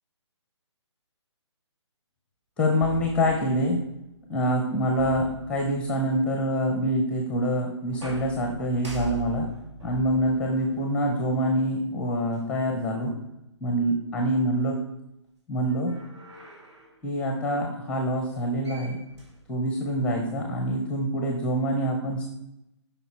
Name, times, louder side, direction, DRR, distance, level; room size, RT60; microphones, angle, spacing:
voice 1, 2.6-3.8 4.3-9.5 9.8-13.1 13.6-14.8 15.5-16.0 17.0-19.0 19.5-22.3, equal, 5° left, 2 dB, 0.7 m, -25 dB
sound 1, 2.8-3.9 5.0-6.1 7.9-11.5 12.3-12.4 15.7-17.0 18.3-18.4 18.6-19.9, right 2 dB, 65° right, 2.3 m, -42 dB
6.6 x 5.5 x 4.2 m, 0.85 s
figure-of-eight pair, 140°, 16 cm